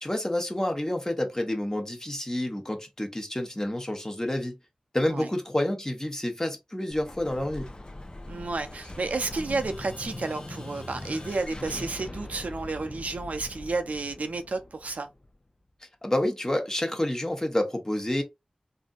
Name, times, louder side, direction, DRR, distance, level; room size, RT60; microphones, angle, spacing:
voice 1, 0.0-4.5 4.9-7.7 16.0-18.2, left 1 dB, 20° left, 1.0 m, -29 dB
Explosion, 6.9-15.6, left 1 dB, 40° left, 0.8 m, -41 dB
voice 2, 8.3-15.1, right 3 dB, 85° right, 0.5 m, -31 dB
3.3 x 2.7 x 2.4 m
wide cardioid pair, 45°, 2 cm